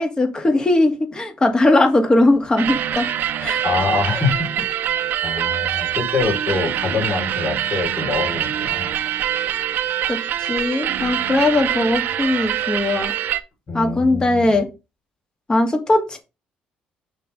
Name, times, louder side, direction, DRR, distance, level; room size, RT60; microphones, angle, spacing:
voice 1, 0.0-3.1 3.4-3.6 10.1-13.1 13.7-14.7 15.5-16.2, left 2 dB, 25° left, 4 dB, 2.0 m, -19 dB
sound 1, 2.6-13.4, right 11 dB, 65° right, 0.6 m, -24 dB
voice 2, 3.6-8.9 13.7-14.5, left 4 dB, 50° left, 0 dB, 3.7 m, -25 dB
6.5 x 3.7 x 5.3 m, 0.27 s
supercardioid pair, 75°, 4 cm